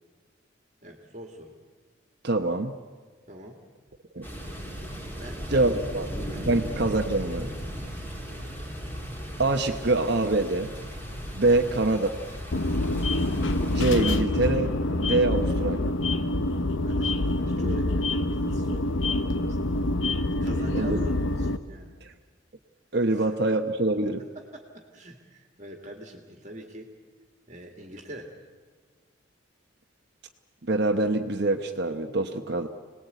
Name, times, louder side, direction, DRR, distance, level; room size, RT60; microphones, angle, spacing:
voice 1, 0.8-1.5 3.3-3.6 5.2-5.9 6.3-6.5 8.3-8.5 11.5-11.6 12.7-12.8 16.8-19.6 20.3-21.9 23.1-23.3 24.2-26.9 27.5-28.3, right 1 dB, 35° right, 2 dB, 2.0 m, -43 dB
voice 2, 2.2-2.7 4.1-4.2 5.5-6.1 6.4-7.5 9.4-10.7 11.3-12.1 13.7-14.7 15.0-15.9 20.7-21.0 22.9-24.2 30.6-32.7, right 2 dB, 55° right, 4 dB, 0.9 m, -25 dB
sound 1, 4.2-14.2, equal, 10° left, 3.3 m, -37 dB
sound 2, 7.1-20.6, left 1 dB, 45° left, 1.8 m, -45 dB
sound 3, 12.5-21.6, left 1 dB, 70° left, 0.9 m, -26 dB
26.0 x 19.0 x 8.2 m, 1.5 s
head